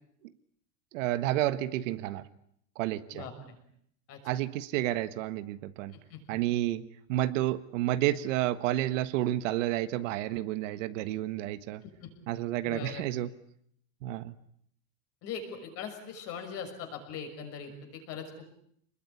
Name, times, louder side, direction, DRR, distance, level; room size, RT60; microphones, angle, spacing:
voice 1, 0.9-2.2 2.7-3.2 4.2-5.9 6.3-11.8 12.3-13.3 14.0-14.4, right 14 dB, 65° right, 12 dB, 1.5 m, -30 dB
voice 2, 3.1-3.6 4.1-4.2 5.9-6.2 11.8-12.1 12.6-13.1 15.2-18.5, left 6 dB, 35° left, 5 dB, 6.4 m, -41 dB
28.0 x 21.0 x 9.7 m, 0.70 s
supercardioid pair, 175°, 40 cm